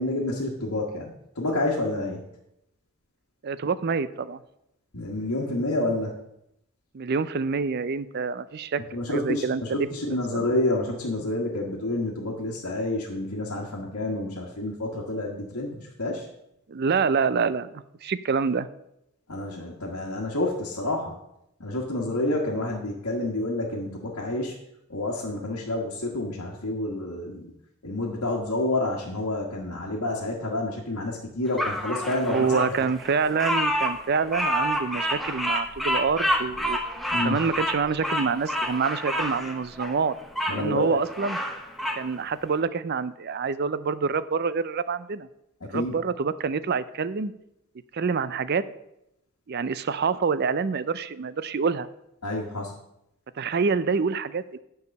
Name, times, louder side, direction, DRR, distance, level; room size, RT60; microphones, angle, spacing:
voice 1, 0.0-2.2 4.9-6.1 8.9-16.3 19.3-21.1 21.6-24.5 24.9-27.5 27.8-32.8 37.1-37.4 40.5-41.0 45.7-46.0 52.2-52.7, left 2 dB, 85° left, -3 dB, 1.5 m, -29 dB
voice 2, 3.4-4.4 6.9-8.8 9.1-9.9 10.3-10.5 16.7-18.7 32.3-36.8 37.2-40.1 40.5-41.4 42.0-45.3 45.7-47.3 47.9-48.6 49.5-51.9 53.4-54.6, right 5 dB, 45° right, 15 dB, 0.4 m, -26 dB
Bird vocalization bird call bird song, 31.6-40.6 41.0-42.0, equal, ahead, 0.8 m, -28 dB
9.6 x 4.8 x 6.4 m, 0.82 s
head